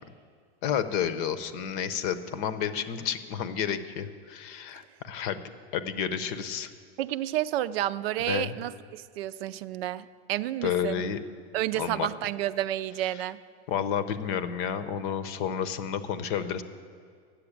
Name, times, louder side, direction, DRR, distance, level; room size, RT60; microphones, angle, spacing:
voice 1, 0.6-5.4 5.7-6.7 8.3-8.5 10.6-11.2 11.7-12.1 13.7-16.6, left 8 dB, 50° left, 12 dB, 0.8 m, -30 dB
voice 2, 7.0-11.0 11.5-13.4, right 13 dB, 65° right, 14 dB, 0.5 m, -30 dB
10.0 x 7.7 x 8.6 m, 2.1 s
supercardioid pair, 140°, 33 cm